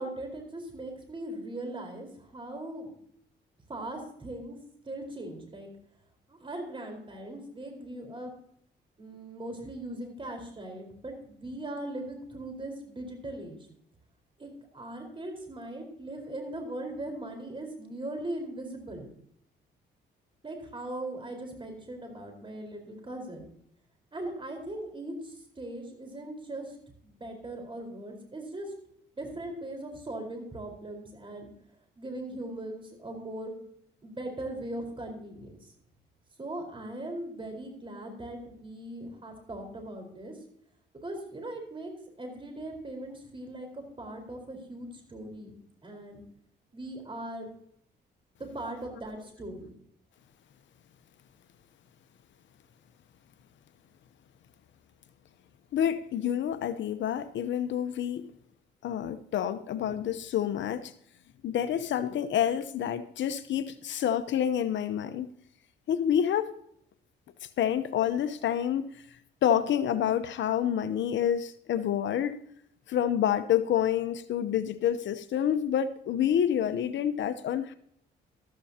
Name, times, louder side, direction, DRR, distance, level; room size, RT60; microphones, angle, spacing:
voice 1, 0.0-2.9 3.7-4.6 4.8-5.7 6.3-8.3 9.0-13.7 14.4-19.1 20.4-23.4 24.1-26.7 27.0-28.7 29.2-31.5 32.0-33.5 34.0-35.6 36.4-40.4 41.0-41.9 42.2-45.5 45.8-46.2 46.7-47.5 48.4-49.7, right 1 dB, 25° right, 4.3 m, -39 dB
voice 2, 55.7-58.3 58.8-60.9 61.4-65.3 65.9-66.5 67.6-69.0 69.4-72.4 72.9-77.7, left 9 dB, 70° left, 0.8 m, -28 dB
14.0 x 13.0 x 2.8 m
cardioid pair, 90°, 20 cm